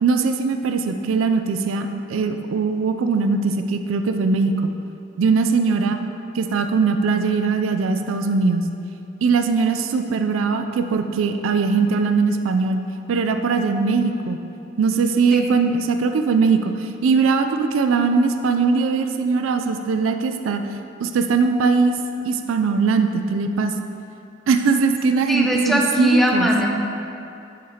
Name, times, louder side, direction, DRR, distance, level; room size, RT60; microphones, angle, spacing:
voice 1, 0.0-4.7 5.2-6.0 6.3-8.7 9.2-12.8 13.1-14.4 14.8-20.6 21.0-22.0 22.2-23.7 24.5-26.5, right 4 dB, 80° right, 7 dB, 0.4 m, -20 dB
voice 2, 25.3-26.7, equal, ahead, -2 dB, 0.6 m, -19 dB
6.7 x 6.4 x 2.8 m, 2.7 s
head